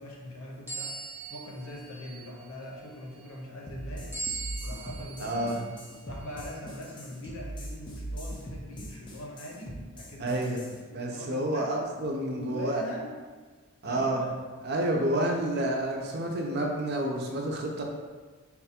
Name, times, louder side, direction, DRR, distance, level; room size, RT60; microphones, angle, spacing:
voice 1, 0.0-4.2 4.6-5.6 6.0-11.8 12.3-13.1 13.8-14.2, left 1 dB, 75° left, -1 dB, 0.8 m, -42 dB
sound 1, 0.7-2.4 4.1-5.6 6.2-6.4 7.2-7.3, right 4 dB, 10° right, 0.8 m, -39 dB
sound 2, 3.7-10.8, right 1 dB, 20° left, 0.4 m, -40 dB
voice 2, 5.2-5.6 10.2-10.6 10.9-12.8 13.8-14.2 14.6-17.8, right 1 dB, 45° right, 0 dB, 0.5 m, -29 dB
4.1 x 2.3 x 4.2 m, 1.4 s
head